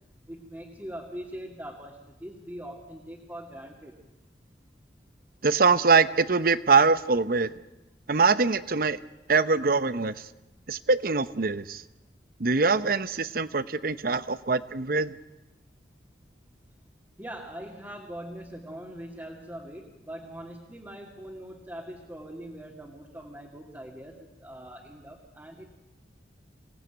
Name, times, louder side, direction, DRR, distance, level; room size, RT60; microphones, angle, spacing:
voice 1, 0.3-4.0 17.2-25.7, right 1 dB, 15° right, -1 dB, 2.4 m, -42 dB
voice 2, 5.4-7.5 8.1-9.0 9.3-10.2 10.7-11.8 12.4-15.2, right 4 dB, 55° right, 15 dB, 0.8 m, -23 dB
26.0 x 18.5 x 9.2 m, 1.0 s
head